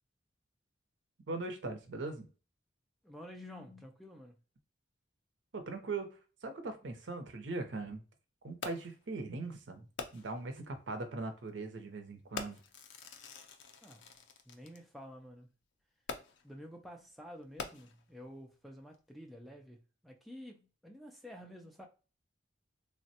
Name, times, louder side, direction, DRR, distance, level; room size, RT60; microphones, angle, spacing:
voice 1, 1.3-2.3 5.5-8.0 8.4-9.9 10.1-12.6, right 3 dB, 70° right, 0.6 m, -40 dB
voice 2, 3.0-4.4 13.8-14.2 14.5-15.5 16.4-21.9, equal, ahead, 0.3 m, -50 dB
Fireworks, 8.6-9.1 10.0-10.5 11.4-11.5 12.4-14.8 16.1-16.6 17.4-18.2 18.9-19.0, left 5 dB, 70° left, 0.4 m, -45 dB
3.3 x 2.1 x 2.7 m
head